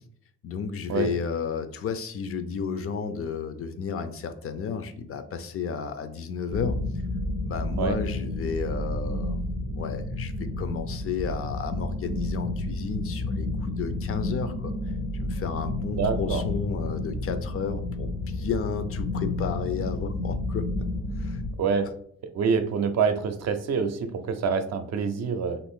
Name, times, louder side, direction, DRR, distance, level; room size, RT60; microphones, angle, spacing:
voice 1, 0.4-6.8 7.4-9.4 9.7-14.7 15.2-20.7 21.2-21.4, left 6 dB, 50° left, 9 dB, 0.4 m, -32 dB
sound 1, 6.5-21.5, left 2 dB, 70° left, 0.8 m, -31 dB
voice 2, 15.9-16.4 21.6-21.9 22.3-25.6, right 5 dB, 60° right, 8 dB, 0.5 m, -26 dB
2.5 x 2.5 x 3.6 m, 0.62 s
cardioid pair, 90°, 30 cm